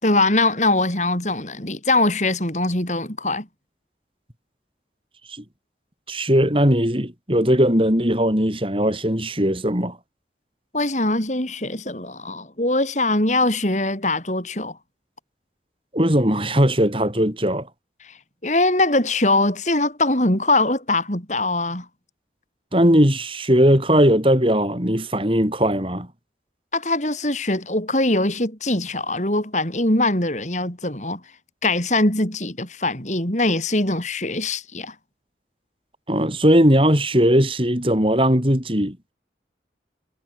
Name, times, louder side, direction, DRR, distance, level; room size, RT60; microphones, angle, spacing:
voice 1, 0.0-3.5 10.7-14.8 18.0-18.1 18.4-21.9 26.7-31.2 31.6-34.9, left 2 dB, 40° left, 6.4 m, -22 dB
voice 2, 6.1-10.0 15.9-17.7 22.7-26.1 36.1-39.0, equal, 30° right, 6.8 m, -19 dB
head